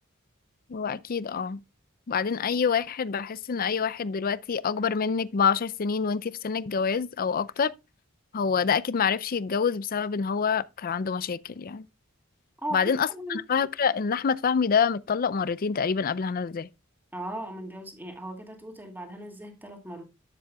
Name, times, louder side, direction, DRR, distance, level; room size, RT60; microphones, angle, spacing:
voice 1, 0.7-1.6 2.1-7.7 8.3-11.9 12.7-16.7, left 6 dB, 45° left, 0.5 m, -26 dB
voice 2, 12.6-13.4 17.1-20.0, right 1 dB, 10° right, 2.1 m, -37 dB
11.0 x 7.4 x 2.3 m
head